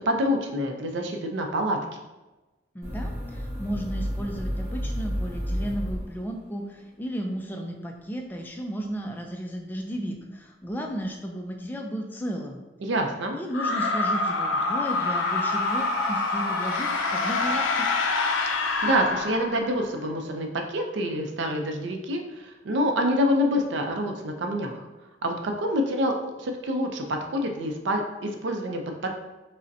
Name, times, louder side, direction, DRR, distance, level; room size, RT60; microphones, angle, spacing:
voice 1, 0.1-1.8 12.8-13.3 18.5-24.9 25.2-29.1, equal, 70° right, 4 dB, 0.5 m, -27 dB
voice 2, 2.7-12.6 13.3-17.9, equal, 10° left, 2 dB, 0.3 m, -34 dB
sound 1, 2.8-6.6, equal, 15° right, 1.0 m, -31 dB
sound 2, 13.5-19.9, left 3 dB, 85° left, 0.4 m, -26 dB
sound 3, 14.9-17.9 19.2-19.3, left 2 dB, 55° left, 0.7 m, -35 dB
5.0 x 2.1 x 2.6 m, 1.1 s
head